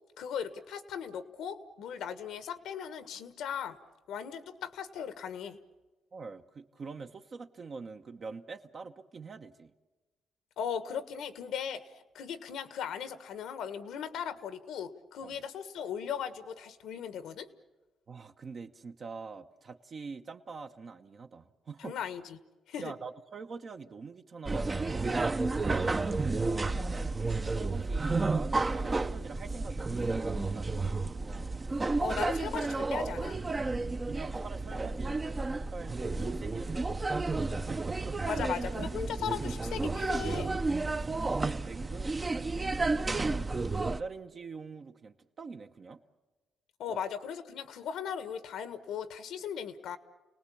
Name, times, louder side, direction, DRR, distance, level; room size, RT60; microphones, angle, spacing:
voice 1, 0.2-3.8 4.1-5.6 10.6-11.8 12.1-17.5 21.8-22.4 22.7-22.9 32.0-33.4 38.3-40.5 46.8-50.0, left 8 dB, 80° left, 12 dB, 1.5 m, -38 dB
voice 2, 6.1-9.7 15.2-15.4 18.1-21.9 22.8-31.9 33.7-38.5 40.8-46.0 46.9-47.0, right 4 dB, 45° right, 5 dB, 1.1 m, -45 dB
sound 1, 24.5-44.0, right 3 dB, 25° right, 0.8 m, -31 dB
29.5 x 19.0 x 8.6 m, 1.2 s
cardioid pair, 90°, 0 cm